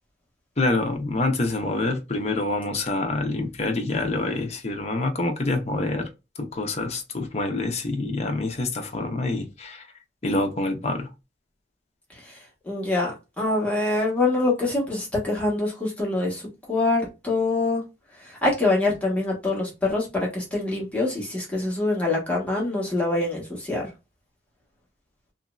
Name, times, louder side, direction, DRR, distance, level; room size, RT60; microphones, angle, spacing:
voice 1, 0.6-6.1 6.4-9.9 10.2-11.1, left 2 dB, 40° left, 0.6 m, -26 dB
voice 2, 12.1-17.8 18.2-23.9, left 2 dB, 10° left, 1.2 m, -25 dB
3.0 x 2.6 x 2.3 m
head